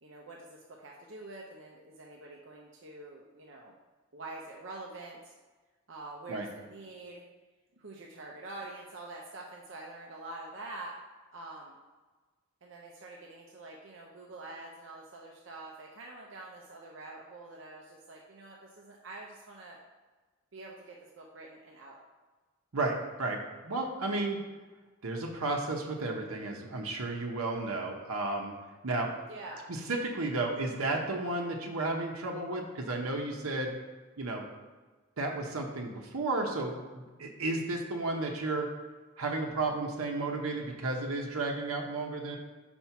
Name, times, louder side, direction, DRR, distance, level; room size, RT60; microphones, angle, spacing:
voice 1, 0.0-3.7 4.1-5.3 5.9-7.2 7.8-10.9 11.3-11.8 12.6-19.8 20.5-22.0 29.3-29.7, right 2 dB, 60° right, -2 dB, 0.7 m, -46 dB
voice 2, 22.7-24.4 25.0-28.5 28.8-29.1 29.9-33.7 34.2-34.4 35.2-38.7 39.2-42.4, right 2 dB, 85° right, 0 dB, 0.9 m, -33 dB
4.4 x 4.4 x 5.7 m, 1.3 s
head